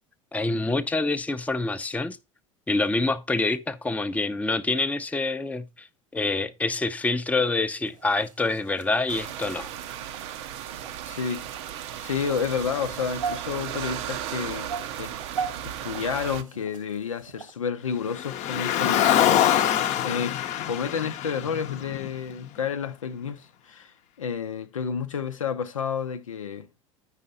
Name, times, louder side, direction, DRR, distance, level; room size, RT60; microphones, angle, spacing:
voice 1, 0.3-2.2 2.7-5.9 6.1-9.7, left 3 dB, 10° left, 0.6 m, -26 dB
sound 1, 7.8-17.5, right 6 dB, 85° right, 1.7 m, -40 dB
sound 2, 9.1-16.4, right 11 dB, 60° right, 0.7 m, -35 dB
voice 2, 11.0-11.4 12.0-15.2 15.6-20.4 20.7-26.8, left 6 dB, 85° left, 0.6 m, -31 dB
Car, 18.1-22.5, left 10 dB, 45° left, 0.7 m, -24 dB
9.0 x 5.5 x 4.0 m
figure-of-eight pair, 75°, 17 cm